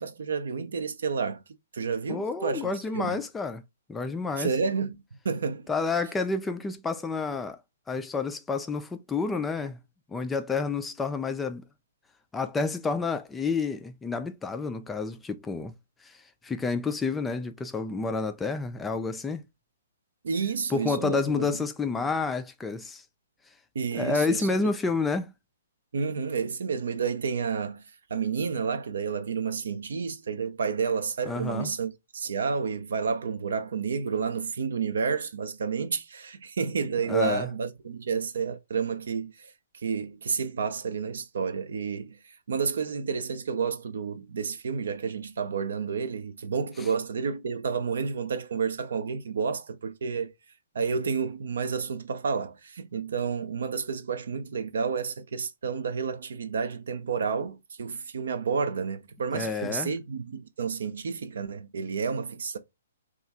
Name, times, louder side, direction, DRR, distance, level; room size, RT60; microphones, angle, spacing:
voice 1, 0.0-1.4 1.7-3.2 4.4-5.0 5.2-5.6 20.2-21.6 23.7-24.7 25.9-27.8 28.1-50.3 50.7-62.6, right 5 dB, 60° right, 0.5 m, -30 dB
voice 2, 2.1-3.6 3.9-4.5 5.7-7.6 7.9-9.8 10.1-11.6 12.3-15.7 16.0-16.2 16.4-19.4 20.7-23.0 23.9-25.3 31.3-31.7 37.1-37.5 59.3-59.9, left 4 dB, 10° left, 0.3 m, -29 dB
3.1 x 2.4 x 4.2 m
figure-of-eight pair, 120°, 0 cm